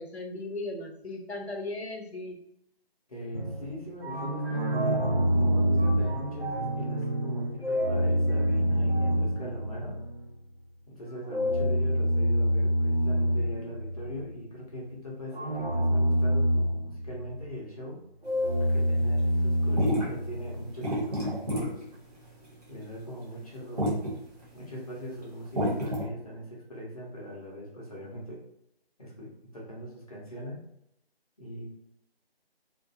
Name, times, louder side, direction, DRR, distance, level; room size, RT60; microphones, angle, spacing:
voice 1, 0.0-2.4, left 2 dB, 90° left, 2 dB, 0.8 m, -37 dB
voice 2, 3.1-10.0 10.9-18.0 18.7-21.9 22.7-23.9 24.5-28.4 29.0-30.6 31.4-31.7, equal, 35° left, -4 dB, 0.7 m, -41 dB
sound 1, 3.3-10.3 11.2-14.3 15.3-17.4 18.2-20.7, equal, 65° right, 1.0 m, -27 dB
sound 2, 18.3-26.0, equal, 40° right, 0.9 m, -32 dB
2.5 x 2.4 x 2.5 m, 0.77 s
figure-of-eight pair, 160°, 31 cm